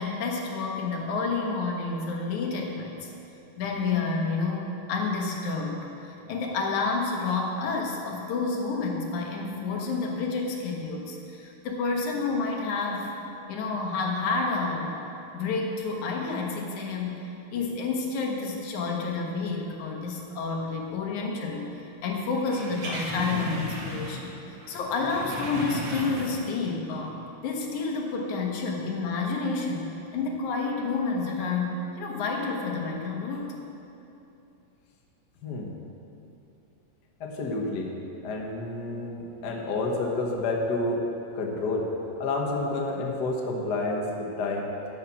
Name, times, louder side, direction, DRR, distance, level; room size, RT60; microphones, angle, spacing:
voice 1, 0.0-3.1 3.6-13.1 13.5-15.0 15.3-24.3 24.7-27.2 27.4-33.5, left 4 dB, 80° left, 0 dB, 2.7 m, -29 dB
sound 1, 22.4-24.4 24.6-26.6 27.0-27.1, right 1 dB, 55° right, 2.4 m, -35 dB
voice 2, 37.2-37.9 38.2-41.0 41.3-41.9 42.2-44.7, left 2 dB, 50° left, 0 dB, 1.3 m, -29 dB
12.5 x 7.4 x 6.1 m, 2.9 s
omnidirectional pair, 3.4 m